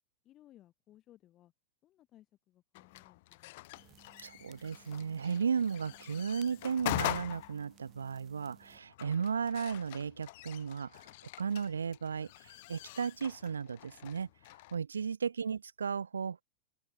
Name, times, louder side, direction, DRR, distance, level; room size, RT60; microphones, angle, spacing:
voice 1, 0.2-1.5 1.8-4.0, left 13 dB, 35° left, 5.8 m, -62 dB
sound 1, 2.7-14.8, left 20 dB, 50° left, 1.0 m, -44 dB
sound 2, 3.8-8.8, right 13 dB, 30° right, 4.6 m, -62 dB
voice 2, 4.2-11.1 11.4-14.3 14.7-16.4, right 6 dB, 70° right, 0.3 m, -35 dB
open air
figure-of-eight pair, 90°, 0 cm